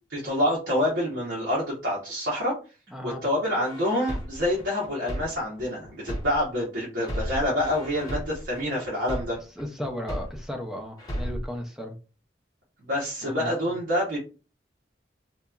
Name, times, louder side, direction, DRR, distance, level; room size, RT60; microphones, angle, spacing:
voice 1, 0.1-2.5 3.0-9.4 12.9-14.2, left 1 dB, 80° right, 0.9 m, -27 dB
voice 2, 2.9-3.2 9.6-12.0 13.2-13.5, left 1 dB, 5° right, 0.4 m, -35 dB
sound 1, 3.6-6.6 7.0-10.6 11.0-11.6, equal, 20° left, 1.0 m, -35 dB
2.9 x 2.3 x 2.3 m
head